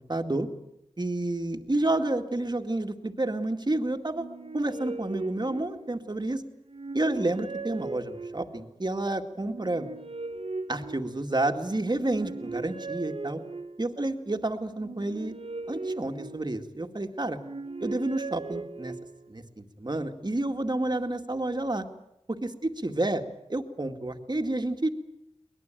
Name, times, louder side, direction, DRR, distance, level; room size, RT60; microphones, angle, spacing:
voice 1, 0.1-0.5 1.0-4.3 4.5-6.4 6.9-9.9 10.7-13.4 13.8-15.3 15.7-17.4 17.8-18.9 19.3-21.8 22.3-23.2 23.5-24.9, right 2 dB, 40° right, 5 dB, 2.2 m, -30 dB
sound 1, 4.1-6.2 6.7-8.7 9.4-11.5 12.0-14.0 14.7-16.8 17.3-19.3, right 3 dB, 60° right, 1.3 m, -39 dB
23.0 x 20.5 x 9.2 m, 0.82 s
wide cardioid pair, 55°, 12 cm